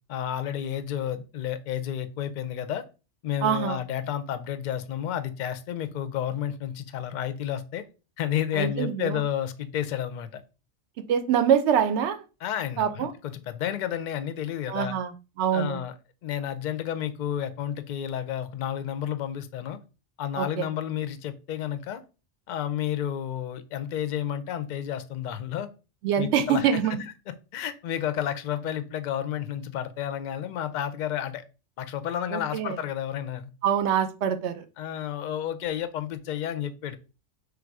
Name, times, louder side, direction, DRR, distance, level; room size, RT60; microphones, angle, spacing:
voice 1, 0.1-2.9 3.2-7.8 8.2-10.4 12.4-15.0 15.5-15.9 16.2-19.8 20.2-22.0 22.5-25.7 26.2-26.8 27.5-31.4 31.8-33.5 34.8-37.0, left 10 dB, 60° left, 12 dB, 0.5 m, -31 dB
voice 2, 3.4-3.8 8.5-9.2 11.0-12.2 12.8-13.1 14.7-15.8 20.4-20.7 26.0-27.0 32.3-32.8 33.6-34.6, right 8 dB, 75° right, 10 dB, 0.9 m, -25 dB
3.4 x 2.5 x 4.5 m, 0.32 s
omnidirectional pair, 1.2 m